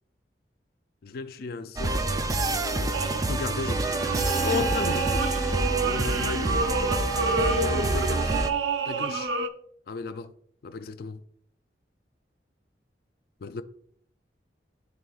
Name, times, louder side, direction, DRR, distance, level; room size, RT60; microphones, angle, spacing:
voice 1, 1.0-2.0 2.4-3.0 3.3-5.6 5.8-6.7 7.4-8.4 8.9-9.3 9.9-10.3 10.6-11.2 13.4-13.6, left 4 dB, 55° left, 0.3 m, -35 dB
sound 1, 1.8-8.5, right 2 dB, 20° right, 0.4 m, -27 dB
sound 2, 2.9-3.5 3.9-9.5, right 4 dB, 80° right, 0.5 m, -29 dB
Wind instrument woodwind instrument, 4.1-8.7, right 3 dB, 30° left, 0.7 m, -36 dB
10.5 x 3.9 x 2.3 m
head